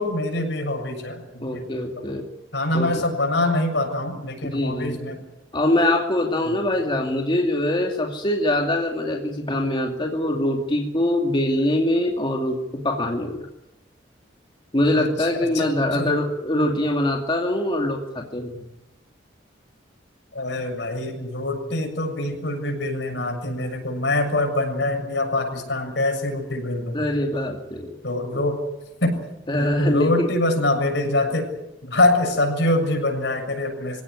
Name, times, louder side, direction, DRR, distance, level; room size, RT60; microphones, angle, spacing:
voice 1, 0.0-1.7 2.5-5.2 6.4-6.6 14.9-15.3 15.5-16.2 20.3-27.0 28.0-28.6 29.0-29.2 29.5-31.5 31.8-34.0, left 2 dB, 70° left, 3 dB, 7.2 m, -24 dB
voice 2, 1.4-2.3 2.7-2.9 4.4-5.0 5.5-13.5 14.7-18.6 26.9-27.9 28.3-28.4 29.5-30.3, left 1 dB, 25° left, 1 dB, 2.4 m, -23 dB
25.5 x 17.0 x 9.6 m, 0.97 s
head